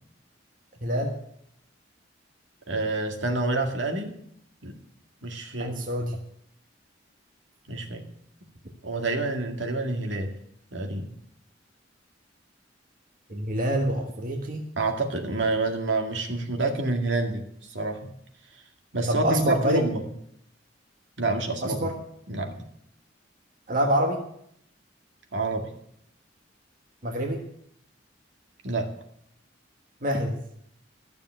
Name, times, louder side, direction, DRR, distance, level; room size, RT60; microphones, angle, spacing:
voice 1, 0.8-1.2 5.6-6.1 13.3-14.6 19.1-19.8 21.6-21.9 23.7-24.2 27.0-27.4 30.0-30.4, right 1 dB, 45° right, 2 dB, 1.5 m, -26 dB
voice 2, 2.7-4.1 4.6-4.8 5.2-5.7 7.7-8.0 8.8-10.3 10.7-11.1 14.8-18.1 18.9-20.0 21.2-21.8 22.3-22.6 25.3-25.7 28.6-28.9, right 2 dB, 70° right, 4 dB, 2.0 m, -28 dB
13.0 x 7.1 x 9.0 m, 0.71 s
head